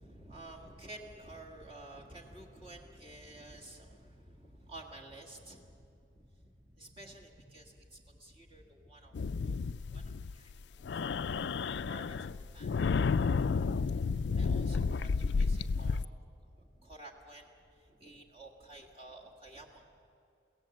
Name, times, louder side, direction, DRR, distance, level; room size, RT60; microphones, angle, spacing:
voice 1, 0.0-10.0 10.3-10.9 11.2-12.7 14.1-19.8, right 1 dB, 30° right, 0 dB, 1.7 m, -52 dB
sound 1, 9.1-10.5 10.8-16.0, left 5 dB, 60° left, 0.4 m, -31 dB
22.5 x 17.0 x 7.8 m, 2.6 s
head